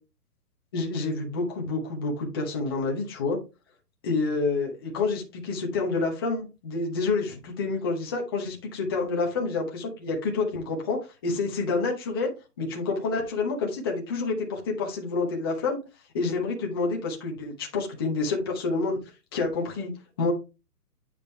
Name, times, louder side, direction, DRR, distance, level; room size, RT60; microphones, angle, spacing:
voice 1, 0.7-3.4 4.0-12.3 12.6-15.8 16.1-19.0 19.3-19.9 20.2-20.3, left 3 dB, 15° left, -1 dB, 0.9 m, -28 dB
8.9 x 5.1 x 3.3 m, 0.28 s
hypercardioid pair, 170°, 49 cm